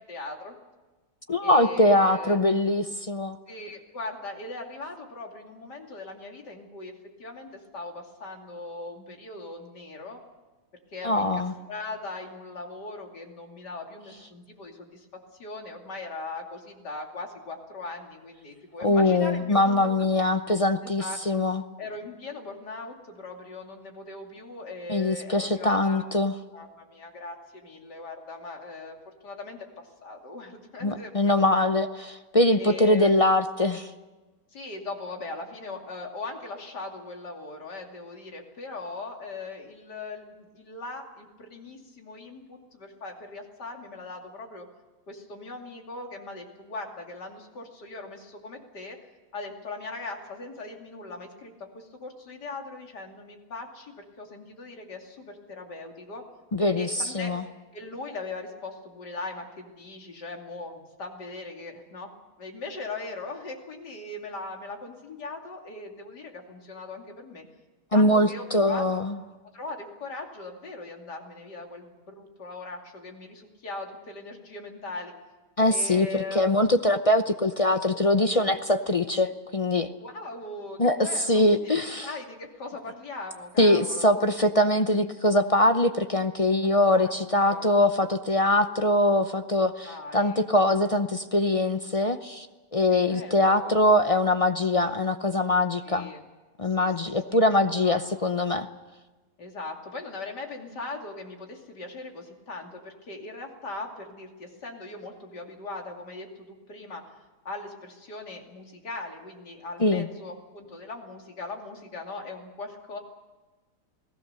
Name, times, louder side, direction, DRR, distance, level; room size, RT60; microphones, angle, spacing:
voice 1, 0.1-0.5 1.4-2.4 3.5-6.9 7.2-10.2 10.9-15.1 15.3-20.1 21.0-21.2 21.8-26.1 26.5-29.0 29.2-31.7 32.6-33.1 34.5-44.7 45.1-49.0 49.3-56.2 56.7-57.3 57.7-62.1 62.4-67.4 67.9-69.0 69.5-75.1 75.7-76.5 80.0-84.2 86.6-87.1 87.4-87.7 89.8-90.4 92.9-93.8 95.8-96.3 96.8-97.2 97.5-98.0 99.4-107.1 107.4-113.0, left 3 dB, 85° left, 2 dB, 3.2 m, -39 dB
voice 2, 1.3-3.4 11.0-11.5 18.8-21.6 24.9-26.3 30.8-31.9 32.3-33.9 56.5-56.9 57.1-57.4 67.9-69.2 75.6-79.9 80.8-81.0 81.3-82.1 83.6-92.5 92.7-96.1 96.6-98.7 109.8-110.1, left 1 dB, 40° left, 8 dB, 0.4 m, -22 dB
28.5 x 18.5 x 6.7 m, 1.2 s
omnidirectional pair, 1.8 m